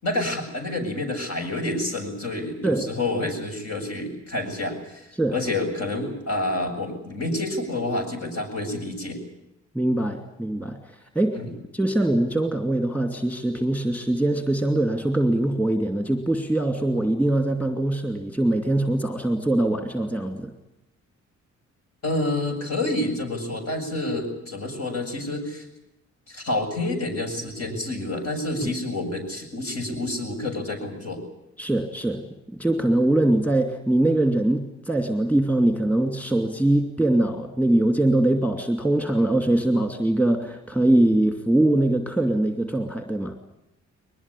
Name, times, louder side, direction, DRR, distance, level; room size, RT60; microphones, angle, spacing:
voice 1, 0.0-9.2 11.3-11.5 22.0-25.6 26.3-31.2, left 2 dB, 55° left, 4 dB, 7.4 m, -28 dB
voice 2, 9.7-11.4 11.7-20.5 28.6-28.7 31.6-32.2 32.5-43.3, right 1 dB, 5° left, 5 dB, 2.6 m, -22 dB
22.0 x 20.0 x 10.0 m, 0.86 s
cardioid pair, 95°, 29 cm